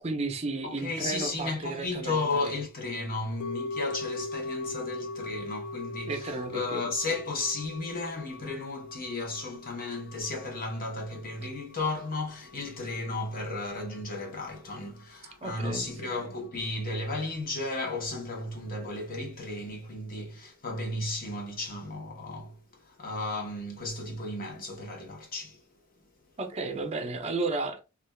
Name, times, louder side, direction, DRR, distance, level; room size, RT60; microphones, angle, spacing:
voice 1, 0.0-2.5 6.1-6.9 15.4-15.9 26.4-27.8, right 3 dB, 30° right, 0.5 m, -33 dB
voice 2, 0.6-25.6, left 2 dB, 45° left, 0.9 m, -34 dB
sound 1, 3.4-13.7 13.9-14.0, left 2 dB, 80° left, 0.4 m, -41 dB
3.3 x 2.4 x 2.2 m
head